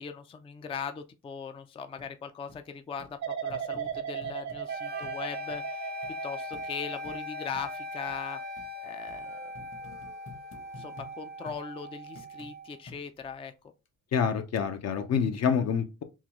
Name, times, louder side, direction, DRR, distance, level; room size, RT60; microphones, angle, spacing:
voice 1, 0.0-3.2 3.4-5.9 6.2-8.4 8.8-9.4 10.8-13.5, left 6 dB, 20° left, 0.3 m, -39 dB
sound 1, 2.0-2.1 2.5-2.6 3.0-3.1 3.5-4.6 5.0-5.2 5.5-5.6 6.0-6.1 6.5-6.7 7.0-7.2 7.5-7.7 8.1-8.2 8.6-8.7 9.1-9.2 9.5-11.1 11.5-11.6 12.2-12.5 12.9-13.3 13.9-14.0, left 3 dB, 40° left, 1.0 m, -49 dB
sound 2, 3.2-10.1 10.6-11.0, right 8 dB, 65° right, 0.8 m, -39 dB
sound 3, 4.7-12.8, left 2 dB, 35° right, 0.6 m, -40 dB
voice 2, 14.1-16.0, left 7 dB, 60° left, 0.7 m, -27 dB
3.8 x 2.2 x 2.9 m
cardioid pair, 90°, 30 cm